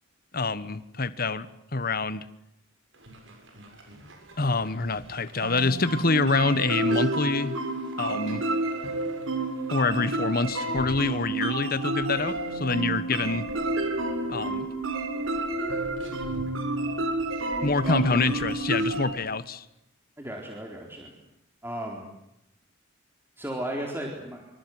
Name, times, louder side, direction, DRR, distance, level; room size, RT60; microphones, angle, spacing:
voice 1, 0.3-2.3 4.4-7.6 8.0-8.4 9.7-13.4 14.3-14.7 17.6-19.6, left 3 dB, 45° left, 14 dB, 1.4 m, -26 dB
sound 1, 2.9-19.2, right 1 dB, 65° right, 7.4 m, -50 dB
sound 2, 5.4-19.1, right 2 dB, 85° right, 4.4 m, -30 dB
voice 2, 17.9-18.2 20.2-21.1 21.6-22.1 23.4-24.4, right 1 dB, 10° right, 0 dB, 4.0 m, -34 dB
26.0 x 26.0 x 7.9 m, 0.83 s
head